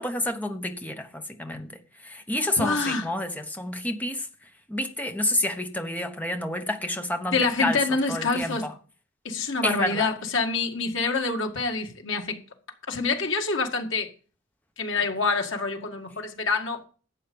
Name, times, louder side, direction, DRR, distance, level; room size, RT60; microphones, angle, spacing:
voice 1, 0.0-1.7 2.0-4.3 4.7-7.8 8.1-8.7 9.6-10.1, left 1 dB, 10° left, 1.2 m, -29 dB
voice 2, 2.6-3.1 7.3-8.7 9.2-12.4 12.9-14.1 14.8-16.8, left 4 dB, 80° left, 2.1 m, -26 dB
11.5 x 8.2 x 5.4 m
head